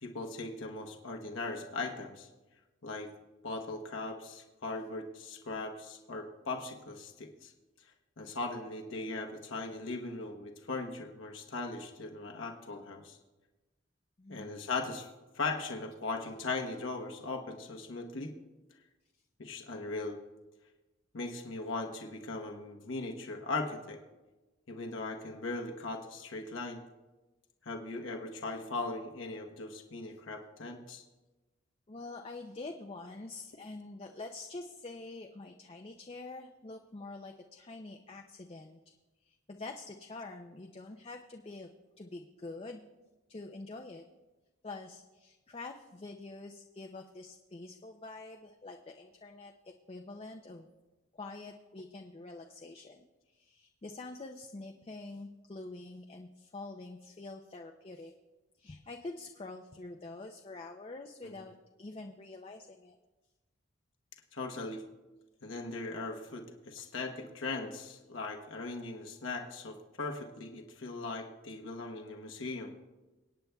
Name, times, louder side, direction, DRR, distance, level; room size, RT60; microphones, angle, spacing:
voice 1, 0.0-2.3 2.8-3.1 3.4-7.5 8.2-13.2 14.3-15.1 15.3-18.3 19.4-20.2 21.1-24.0 24.7-26.8 27.6-31.0 61.2-61.3 64.3-64.8 65.4-72.7, left 3 dB, 80° left, 2 dB, 1.1 m, -39 dB
voice 2, 14.2-14.5 31.9-38.8 39.2-41.7 42.0-42.8 43.3-44.0 44.6-50.7 51.1-58.1 58.6-61.5 61.8-63.0 66.8-66.9, left 2 dB, 30° left, 3 dB, 0.5 m, -46 dB
25.0 x 9.3 x 2.3 m, 1.1 s
head